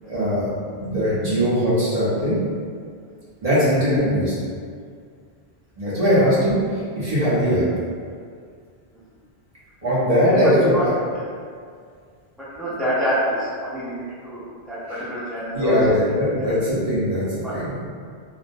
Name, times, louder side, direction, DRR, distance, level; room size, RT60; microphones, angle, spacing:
voice 1, 0.1-2.4 3.4-4.3 5.8-6.6 6.9-7.6 9.8-10.9 15.5-17.2 17.5-17.8, equal, 40° right, -10 dB, 0.7 m, -20 dB
voice 2, 10.4-10.9 11.1-11.3 12.4-15.7 16.2-16.5 17.4-17.7, equal, ahead, -11 dB, 0.3 m, -27 dB
2.4 x 2.0 x 2.5 m, 2.1 s
omnidirectional pair, 1.1 m